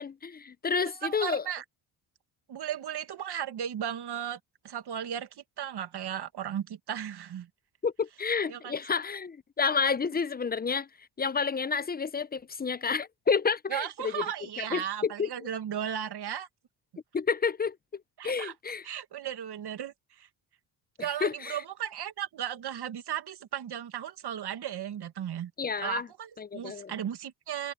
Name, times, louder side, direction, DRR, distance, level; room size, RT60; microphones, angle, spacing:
voice 1, 0.0-1.5 7.8-10.9 11.2-14.2 14.6-15.3 17.1-18.8 21.0-21.6 25.6-26.1 26.4-26.9, left 5 dB, 20° left, 0.5 m, -30 dB
voice 2, 0.9-1.6 2.5-4.4 4.6-7.5 8.5-8.8 13.7-16.5 18.2-18.5 18.8-20.3 21.0-25.5 25.8-27.7, right 9 dB, 55° right, 2.0 m, -36 dB
open air
cardioid pair, 95°, 48 cm